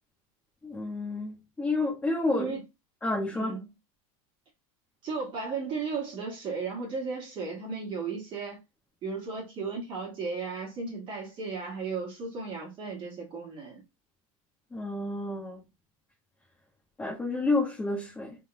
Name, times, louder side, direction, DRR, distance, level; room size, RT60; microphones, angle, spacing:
voice 1, 0.6-2.5 3.0-3.5 14.7-15.6 17.0-18.4, left 2 dB, 10° left, 1.5 m, -30 dB
voice 2, 3.3-3.6 5.0-8.6 9.0-13.8, right 4 dB, 25° right, 2.1 m, -35 dB
5.2 x 3.9 x 2.3 m
supercardioid pair, 160°, 19 cm